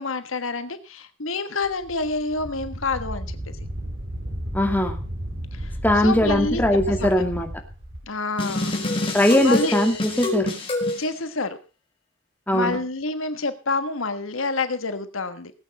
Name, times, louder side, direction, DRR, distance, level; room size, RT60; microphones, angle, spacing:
voice 1, 0.0-3.6 5.5-7.3 8.1-8.8 9.4-9.7 11.0-11.6 12.5-15.5, left 3 dB, 85° left, 10 dB, 1.4 m, -28 dB
Wind, 1.6-8.0, equal, 55° right, 5.8 m, -33 dB
voice 2, 4.5-5.0 5.8-7.5 9.1-10.5 12.5-12.8, left 1 dB, 10° left, 4 dB, 2.3 m, -20 dB
sound 1, 8.4-11.0, left 2 dB, 25° left, 4.5 m, -27 dB
18.5 x 8.8 x 5.4 m, 0.34 s
head